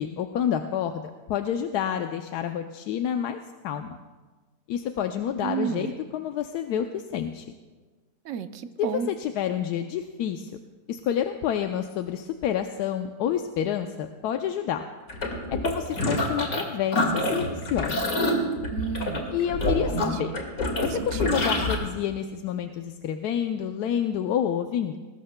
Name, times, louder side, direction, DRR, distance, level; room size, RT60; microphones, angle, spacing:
voice 1, 0.0-4.0 4.7-7.5 8.8-10.5 10.9-14.8 15.5-18.1 19.3-20.3 20.8-25.0, left 9 dB, 85° left, 6 dB, 1.2 m, -29 dB
voice 2, 5.4-6.0 8.2-9.1 18.7-19.4 20.0-20.4 20.9-21.4, right 8 dB, 60° right, 10 dB, 0.9 m, -32 dB
sound 1, 15.1-16.6 16.9-21.7, left 1 dB, 60° left, 2.3 m, -26 dB
21.0 x 19.0 x 2.2 m, 1.3 s
omnidirectional pair, 1.7 m